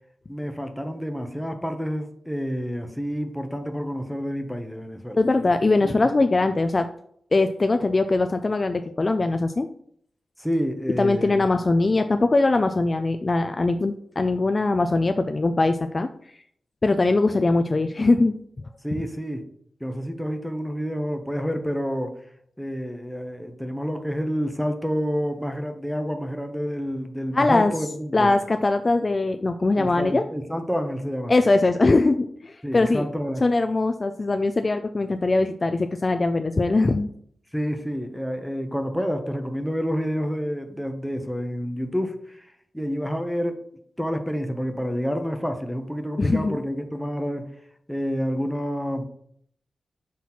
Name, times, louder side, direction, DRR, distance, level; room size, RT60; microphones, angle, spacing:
voice 1, 0.3-5.2 5.8-6.0 10.4-11.5 18.8-19.4 19.8-22.1 22.6-28.3 29.8-31.3 32.6-33.4 37.5-42.5 42.7-43.7 44.0-47.5 47.9-49.1, equal, ahead, 5 dB, 0.8 m, -28 dB
voice 2, 5.2-6.9 7.3-9.7 11.0-16.1 16.8-18.4 27.3-27.7 28.1-30.2 31.3-33.0 33.4-37.1 46.2-46.6, left 2 dB, 30° left, 7 dB, 0.3 m, -21 dB
5.9 x 3.1 x 5.5 m, 0.65 s
wide cardioid pair, 125°, 0 cm